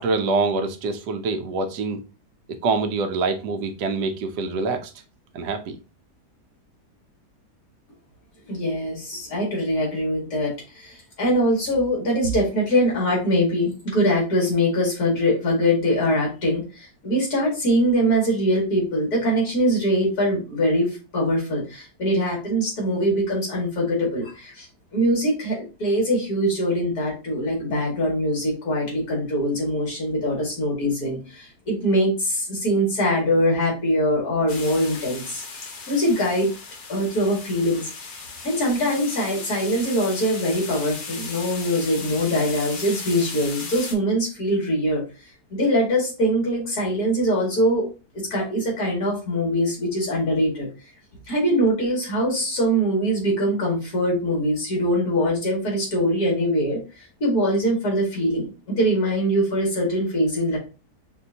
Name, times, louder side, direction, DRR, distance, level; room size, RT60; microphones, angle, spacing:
voice 1, 0.0-2.0 2.6-4.9 5.3-5.8, right 3 dB, 80° right, 1.3 m, -25 dB
voice 2, 8.5-24.7 24.9-36.5 36.9-37.9 38.4-45.0 45.5-47.9 48.3-50.7 51.3-60.6, equal, 65° left, 2.6 m, -23 dB
sound 1, 34.5-43.9, left 4 dB, 50° left, 0.6 m, -37 dB
5.9 x 2.7 x 2.7 m
omnidirectional pair, 1.7 m